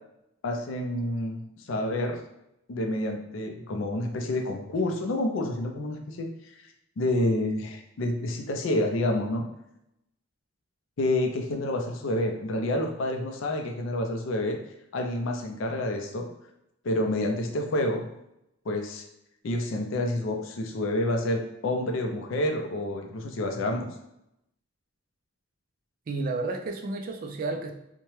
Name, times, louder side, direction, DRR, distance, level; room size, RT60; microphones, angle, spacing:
voice 1, 0.4-2.2 2.7-6.7 7.0-9.4 11.0-14.6 14.9-16.3 16.8-18.1 18.7-19.0 19.4-23.9, left 1 dB, 65° left, 3 dB, 0.4 m, -28 dB
voice 2, 26.1-27.7, right 3 dB, 45° right, 3 dB, 0.3 m, -31 dB
2.8 x 2.1 x 3.0 m, 0.84 s
head